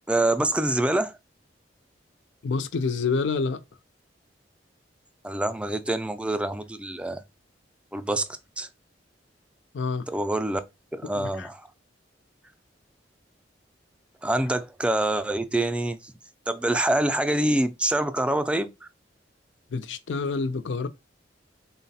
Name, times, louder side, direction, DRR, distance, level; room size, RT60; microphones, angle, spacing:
voice 1, 0.1-1.2 5.2-7.2 7.9-8.3 8.6-8.7 10.1-10.6 10.9-11.7 14.2-16.1 16.5-18.7, right 1 dB, 5° right, 0.3 m, -25 dB
voice 2, 2.4-3.6 9.7-10.1 11.1-11.5 19.7-20.9, left 4 dB, 80° left, 0.5 m, -28 dB
3.9 x 2.1 x 4.0 m
head